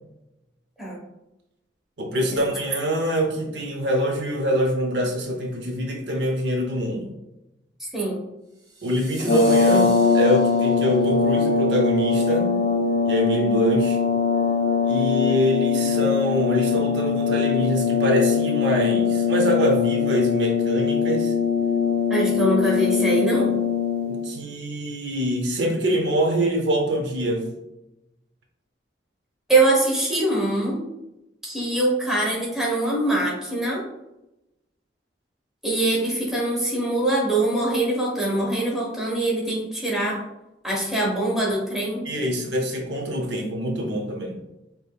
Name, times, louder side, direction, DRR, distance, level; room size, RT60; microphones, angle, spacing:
voice 1, 2.0-7.1 8.8-12.6 13.0-14.0 14.8-21.3 24.0-27.5 42.0-44.4, equal, 80° right, 2 dB, 0.7 m, -24 dB
sound 1, 8.6-11.1, right 2 dB, 25° right, 1.1 m, -41 dB
sound 2, 9.2-24.3, left 5 dB, 55° left, 0.3 m, -21 dB
voice 2, 22.1-23.6 29.5-30.8 31.4-33.8 35.6-40.2 40.6-42.0, right 2 dB, ahead, -4 dB, 1.0 m, -23 dB
5.0 x 3.0 x 2.3 m, 0.94 s
head